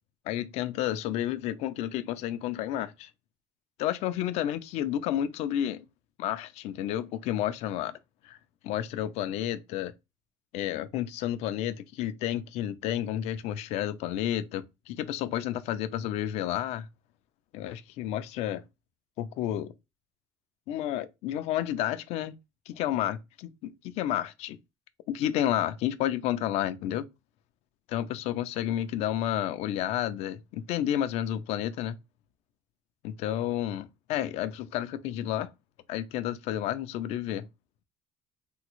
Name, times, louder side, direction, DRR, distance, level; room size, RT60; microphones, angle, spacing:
voice 1, 0.3-3.1 3.8-5.9 6.2-8.0 8.2-8.4 8.6-9.9 10.5-16.9 17.5-18.6 19.2-19.7 20.7-22.3 22.7-24.6 25.1-27.1 27.9-32.0 33.0-35.5 35.9-37.5, left 12 dB, 75° left, 0.4 m, -31 dB
3.5 x 2.0 x 2.9 m
cardioid pair, 145°, 11 cm